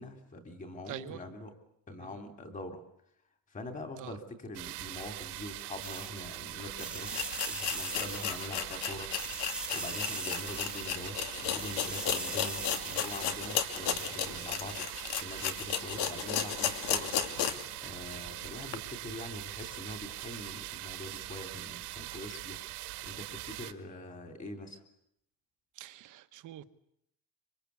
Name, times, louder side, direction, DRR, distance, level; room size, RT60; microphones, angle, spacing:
voice 1, 0.0-1.5 1.9-2.8 3.5-9.1 9.4-17.1 17.8-22.6 23.0-24.8, left 2 dB, 20° left, 6 dB, 3.2 m, -44 dB
voice 2, 0.9-1.2 2.0-2.2 4.0-4.2 25.8-26.6, right 13 dB, 50° right, 11 dB, 1.3 m, -45 dB
sound 1, 4.5-23.7, right 17 dB, 80° right, 1.9 m, -42 dB
sound 2, 5.8-6.4 6.7-8.8 9.1-11.2 11.5-13.6 13.9-14.1, right 2 dB, ahead, 1.5 m, -41 dB
sound 3, 6.6-6.7 7.1-17.7 18.1-18.2 18.7-18.8, left 9 dB, 75° left, 2.6 m, -34 dB
26.0 x 25.0 x 8.4 m, 0.73 s
cardioid pair, 180°, 41 cm